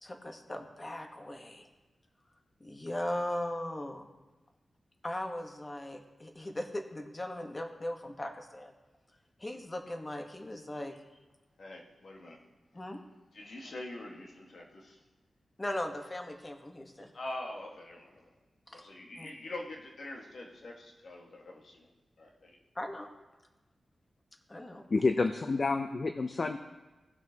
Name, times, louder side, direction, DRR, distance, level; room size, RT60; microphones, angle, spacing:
voice 1, 0.0-1.7 2.6-4.1 5.0-8.7 9.4-11.0 12.7-13.0 15.6-17.1 18.7-18.8 19.2-19.3 22.7-23.1 24.5-24.8, left 1 dB, 30° left, 4 dB, 1.2 m, -38 dB
voice 2, 11.6-12.4 13.3-15.0 17.1-18.3 18.7-21.9 22.2-22.6, left 1 dB, 70° left, 0 dB, 1.5 m, -44 dB
voice 3, 24.9-26.6, left 3 dB, 55° left, 7 dB, 0.5 m, -29 dB
17.5 x 6.2 x 2.9 m, 1.1 s
cardioid pair, 65°, 0 cm